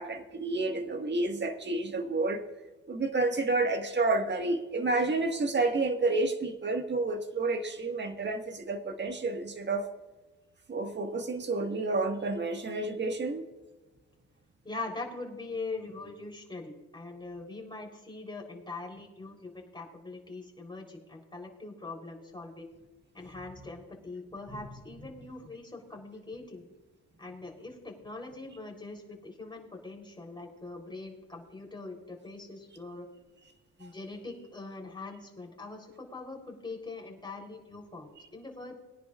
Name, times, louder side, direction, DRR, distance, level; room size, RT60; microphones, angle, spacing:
voice 1, 0.0-2.4 2.9-9.9 10.7-13.4 33.8-33.9, right 3 dB, 35° right, 6 dB, 1.7 m, -30 dB
voice 2, 14.6-22.7 23.1-26.7 27.2-33.1 33.8-38.7, left 3 dB, 15° left, 0 dB, 3.6 m, -42 dB
21.5 x 10.5 x 2.5 m, 1.1 s
cardioid pair, 90°, 30 cm